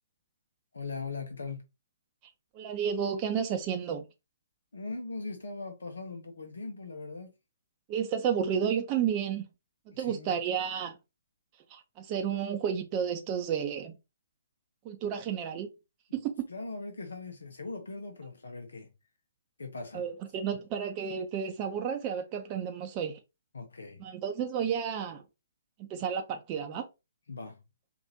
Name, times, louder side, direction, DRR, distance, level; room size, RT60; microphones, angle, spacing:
voice 1, 0.7-1.6 4.7-7.3 9.9-10.4 16.5-18.9 19.6-20.0 23.5-24.1 27.3-27.6, left 3 dB, 75° left, 0.8 m, -40 dB
voice 2, 2.5-4.0 7.9-9.4 10.0-10.9 11.7-13.9 14.8-15.7 16.1-16.3 19.9-23.2 24.0-25.2 25.8-26.8, right 8 dB, 30° right, 0.6 m, -31 dB
4.9 x 2.6 x 2.7 m
figure-of-eight pair, 130°, 0 cm